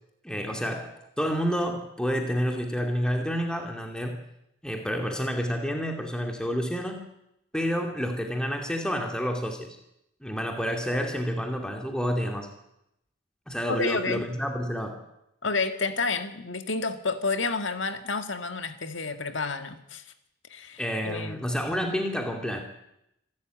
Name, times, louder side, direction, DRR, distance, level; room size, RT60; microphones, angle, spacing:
voice 1, 0.2-4.2 4.6-7.1 7.5-9.8 10.2-12.5 13.5-15.1 20.8-22.6, equal, 5° left, 2.4 m, -29 dB
voice 2, 13.7-14.3 15.4-20.1 20.5-21.4, left 4 dB, 65° left, 1.9 m, -30 dB
26.0 x 13.0 x 9.2 m
head